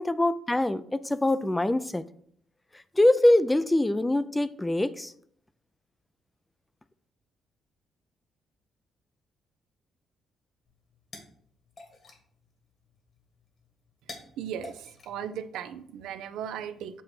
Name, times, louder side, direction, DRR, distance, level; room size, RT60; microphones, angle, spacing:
voice 1, 0.0-2.0 3.0-5.1, left 1 dB, 10° left, 14 dB, 0.4 m, -23 dB
sound 1, 10.7-16.0, left 3 dB, 45° left, 1.6 m, -51 dB
voice 2, 14.4-17.0, right 9 dB, 85° right, 10 dB, 0.5 m, -37 dB
7.5 x 2.6 x 5.9 m, 0.64 s
cardioid pair, 90°, 0 cm